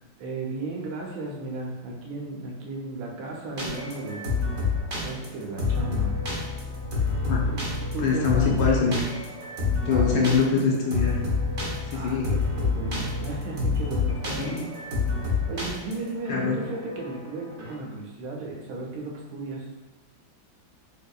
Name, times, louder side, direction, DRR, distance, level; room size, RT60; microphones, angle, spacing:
voice 1, 0.2-4.2 5.0-6.1 7.9-8.5 9.9-10.3 11.9-14.7 15.5-19.7, right 3 dB, 80° right, -1 dB, 1.5 m, -35 dB
sound 1, 3.6-17.7, left 4 dB, 60° right, 0.7 m, -28 dB
voice 2, 8.0-9.3 9.9-11.2 11.9-12.3 14.4-14.6 16.3-16.6, left 5 dB, 75° left, -2 dB, 1.1 m, -24 dB
4.0 x 2.7 x 2.3 m, 1.0 s
omnidirectional pair, 2.2 m